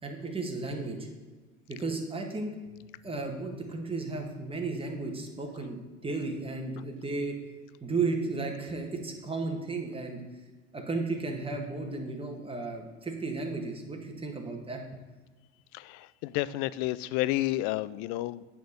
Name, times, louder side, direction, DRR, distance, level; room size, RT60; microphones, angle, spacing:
voice 1, 0.0-1.1 1.7-2.6 3.0-7.4 7.8-10.2 10.7-14.8, right 3 dB, 15° right, 2 dB, 1.8 m, -34 dB
voice 2, 15.7-18.5, left 16 dB, 55° left, 18 dB, 0.4 m, -31 dB
9.2 x 4.3 x 7.0 m, 1.3 s
hypercardioid pair, 70°, 34 cm